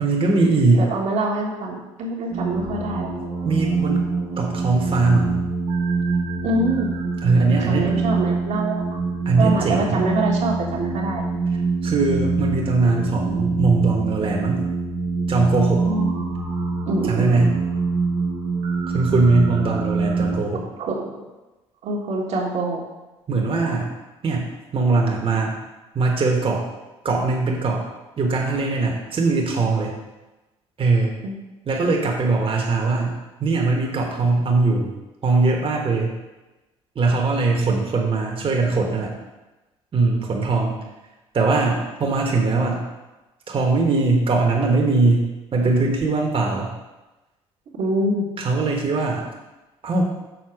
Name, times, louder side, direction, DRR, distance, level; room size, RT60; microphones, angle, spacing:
voice 1, 0.0-0.9 3.4-4.1 4.4-5.4 7.2-7.9 9.2-10.0 11.8-14.6 15.3-15.8 17.1-17.6 18.8-20.7 23.3-23.9 24.2-25.6 25.9-26.7 27.0-27.8 28.2-30.0 30.8-31.2 31.6-34.9 35.2-36.1 36.9-39.2 39.9-40.8 41.3-42.9 43.5-46.7 48.4-49.3 49.8-50.1, right 3 dB, 40° right, 0 dB, 1.3 m, -21 dB
voice 2, 0.7-3.1 6.4-6.9 7.5-8.8 9.4-11.3 15.8-16.3 16.9-17.5 20.8-21.1 21.8-22.8 31.2-31.3 47.8-48.3, right 2 dB, 65° right, -2 dB, 1.5 m, -25 dB
sound 1, 2.3-20.4, right 4 dB, 80° right, 1.4 m, -25 dB
6.7 x 4.0 x 5.9 m, 1.1 s
hypercardioid pair, 60°, 14 cm